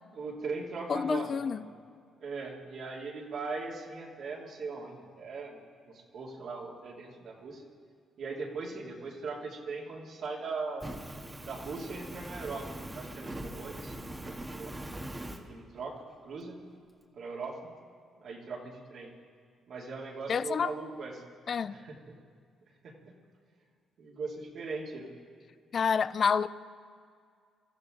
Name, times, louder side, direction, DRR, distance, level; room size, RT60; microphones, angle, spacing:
voice 1, 0.1-1.4 2.2-5.6 5.9-7.6 8.2-10.9 11.4-14.8 15.1-16.0 16.2-16.6 17.2-17.6 18.2-19.1 19.7-21.2 21.7-22.0 22.8-23.0 24.0-25.1, right 4 dB, 65° right, -2 dB, 2.8 m, -39 dB
voice 2, 0.9-1.6 20.3-20.7 21.5-21.7 25.7-26.5, left 6 dB, 50° left, 16 dB, 0.5 m, -28 dB
Fire, 10.8-15.4, right 1 dB, 15° right, 1.6 m, -41 dB
25.0 x 14.0 x 3.9 m, 2.2 s
cardioid pair, 90°, 0 cm